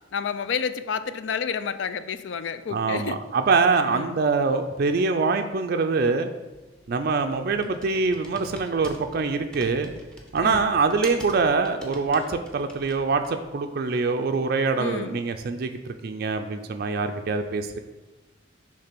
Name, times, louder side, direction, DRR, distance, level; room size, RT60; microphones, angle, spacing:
voice 1, 0.1-3.2 3.9-4.2 10.4-10.7 14.8-15.2, left 6 dB, 70° left, 13 dB, 0.4 m, -30 dB
voice 2, 2.7-6.3 6.9-9.9 10.3-17.8, right 4 dB, 50° right, 6 dB, 0.4 m, -24 dB
Computer keyboard, 6.5-13.5, right 1 dB, 5° left, 0.7 m, -45 dB
6.6 x 3.3 x 5.9 m, 1.1 s
head